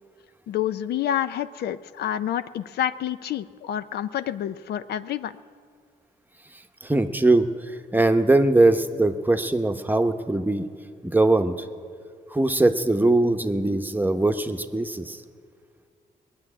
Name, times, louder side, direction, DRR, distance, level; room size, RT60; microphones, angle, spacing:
voice 1, 0.5-5.3, left 10 dB, 90° left, 13 dB, 0.5 m, -28 dB
voice 2, 6.8-7.5 7.9-10.6 11.0-11.5 12.3-15.2, right 2 dB, 10° right, 7 dB, 0.8 m, -21 dB
20.0 x 7.1 x 9.9 m, 2.2 s
cardioid pair, 95°, 16 cm